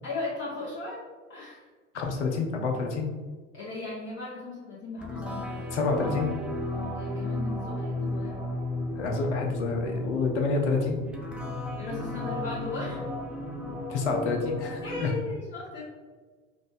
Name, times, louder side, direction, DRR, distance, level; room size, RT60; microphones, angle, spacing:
voice 1, 0.0-1.0 1.3-1.7 3.5-5.7 6.9-8.4 11.8-13.0 14.8-15.8, left 3 dB, 30° left, -8 dB, 1.3 m, -37 dB
voice 2, 1.9-3.1 5.7-6.3 8.9-11.0 13.9-15.1, left 4 dB, 65° left, 2 dB, 0.9 m, -28 dB
sound 1, 5.0-15.0, left 2 dB, 5° right, 0.7 m, -34 dB
5.0 x 2.6 x 3.8 m, 1.4 s
figure-of-eight pair, 70°, 37 cm